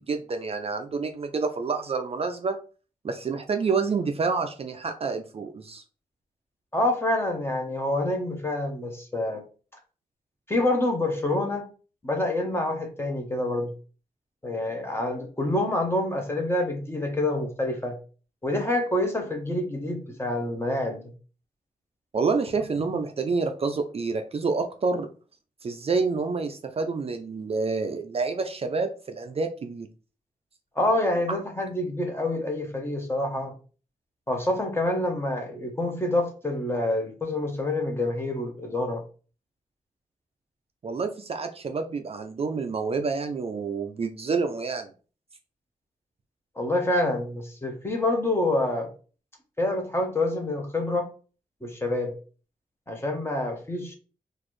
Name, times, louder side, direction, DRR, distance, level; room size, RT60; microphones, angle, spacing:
voice 1, 0.0-2.6 3.0-5.8 22.1-25.1 25.6-29.9 31.3-31.4 40.8-44.9, right 4 dB, 40° right, 6 dB, 0.4 m, -28 dB
voice 2, 6.7-9.4 10.5-11.7 12.0-13.7 14.4-18.0 18.4-21.1 30.8-33.5 34.3-39.0 46.6-48.9 49.6-51.1 51.6-52.1 52.9-53.9, left 1 dB, 15° left, 3 dB, 0.8 m, -27 dB
4.0 x 2.5 x 3.1 m, 0.37 s
wide cardioid pair, 115°, 15 cm